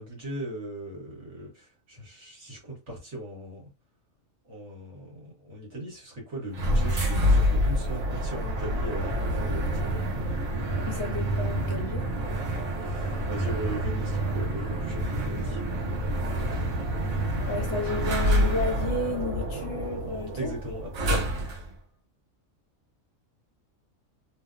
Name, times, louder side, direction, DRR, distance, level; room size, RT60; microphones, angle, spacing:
voice 1, 0.0-3.7 4.5-10.0 12.8-15.6 20.3-21.6, right 1 dB, 55° right, 1.4 m, -38 dB
sound 1, 6.5-21.7, equal, 80° right, 1.2 m, -27 dB
voice 2, 10.9-12.2 17.5-20.5, left 3 dB, 60° left, 1.0 m, -32 dB
2.8 x 2.0 x 2.3 m
omnidirectional pair, 1.4 m